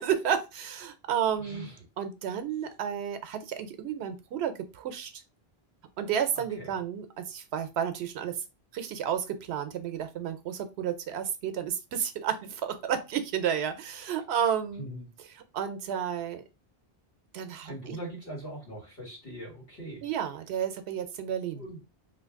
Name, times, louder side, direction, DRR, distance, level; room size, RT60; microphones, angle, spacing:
voice 1, 0.0-1.7 2.0-5.2 6.0-8.4 8.7-14.8 15.5-16.4 17.3-18.0 20.0-21.6, right 8 dB, 85° right, 10 dB, 0.9 m, -31 dB
voice 2, 1.4-1.8 6.3-6.8 14.8-15.1 17.6-20.1 21.6-21.8, right 1 dB, 60° left, -3 dB, 1.8 m, -41 dB
2.7 x 2.5 x 3.4 m, 0.27 s
omnidirectional pair, 1.1 m